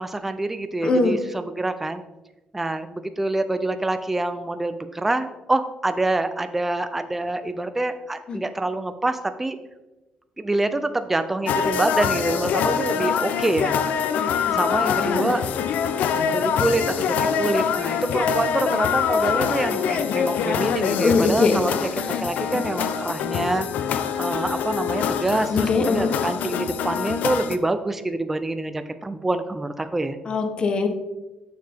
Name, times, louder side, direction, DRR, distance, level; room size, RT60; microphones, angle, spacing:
voice 1, 0.0-2.0 2.5-9.6 10.4-13.8 14.5-15.4 16.3-21.8 22.2-23.7 24.2-30.2, right 2 dB, 10° right, 10 dB, 0.3 m, -26 dB
voice 2, 0.8-1.2 8.3-8.4 14.2-14.6 15.0-15.2 21.0-21.6 22.0-22.2 25.5-26.2 30.3-30.9, left 4 dB, 35° left, 6 dB, 0.8 m, -22 dB
sound 1, 11.5-27.6, left 7 dB, 75° left, 0.5 m, -24 dB
6.5 x 6.5 x 3.4 m, 1.1 s
cardioid pair, 155°, 3 cm